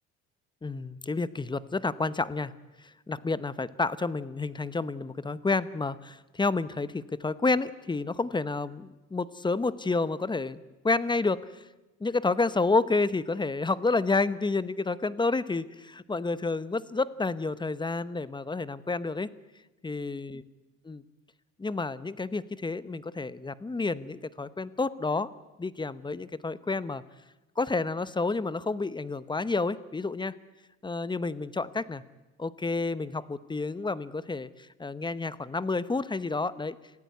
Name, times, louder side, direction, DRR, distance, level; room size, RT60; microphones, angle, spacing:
voice 1, 0.6-2.5 3.1-11.4 12.0-19.3 19.8-20.4 20.9-21.0 21.6-25.3 25.6-27.0 27.6-30.3 30.8-32.0 32.4-36.8, left 3 dB, 15° left, 16 dB, 0.9 m, -30 dB
27.0 x 16.0 x 9.6 m, 1.1 s
cardioid pair, 105°, 31 cm